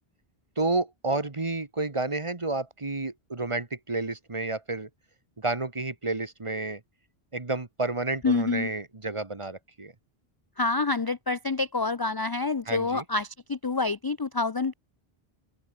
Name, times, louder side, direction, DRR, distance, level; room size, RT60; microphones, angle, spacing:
voice 1, 0.6-4.9 5.4-6.8 7.3-9.9 12.6-13.0, right 2 dB, 30° right, 1.4 m, -30 dB
voice 2, 8.2-8.7 10.6-14.7, left 3 dB, 30° left, 0.4 m, -27 dB
open air
omnidirectional pair, 1.0 m